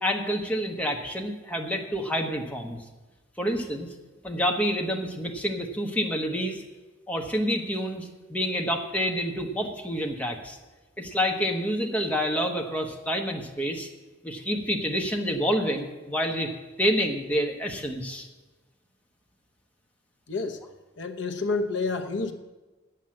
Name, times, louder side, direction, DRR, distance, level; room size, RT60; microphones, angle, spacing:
voice 1, 0.0-2.8 3.4-3.9 4.2-6.6 7.1-10.6 11.0-13.9 14.2-16.5 16.8-18.3, equal, 5° left, 1 dB, 1.1 m, -28 dB
voice 2, 20.3-20.6 21.0-22.3, left 3 dB, 65° left, 6 dB, 0.9 m, -29 dB
9.8 x 7.6 x 7.6 m, 1.2 s
head